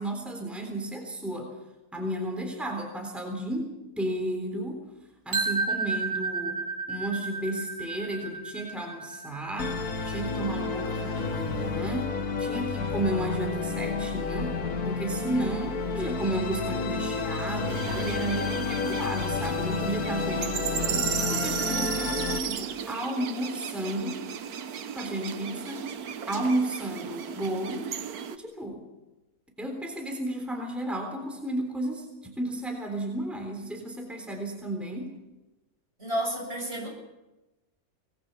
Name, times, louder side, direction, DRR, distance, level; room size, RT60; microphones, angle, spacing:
voice 1, 0.0-1.6 1.9-4.8 5.3-9.8 10.0-12.1 12.4-14.6 14.9-24.2 24.9-25.9 26.3-27.9 28.3-28.9 29.6-35.1, right 1 dB, ahead, 3 dB, 3.6 m, -33 dB
sound 1, 5.3-11.2, right 4 dB, 65° right, 3.0 m, -33 dB
Musical instrument, 9.6-22.4, left 4 dB, 90° left, 2.0 m, -30 dB
sound 2, 17.7-28.4, right 8 dB, 90° right, 1.5 m, -35 dB
voice 2, 36.0-36.9, right 1 dB, 45° right, -1 dB, 7.7 m, -31 dB
25.0 x 20.0 x 7.0 m, 1.1 s
omnidirectional pair, 1.5 m